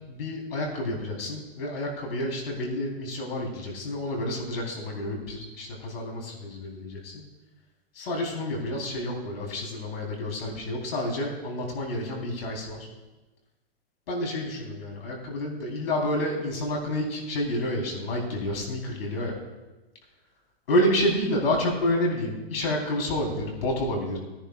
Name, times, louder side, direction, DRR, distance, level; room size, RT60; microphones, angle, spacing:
voice 1, 0.1-7.2 7.9-12.8 14.1-19.4 20.7-24.2, left 1 dB, 70° left, 0 dB, 4.0 m, -29 dB
18.0 x 10.0 x 2.5 m, 1.1 s
hypercardioid pair, 135°, 31 cm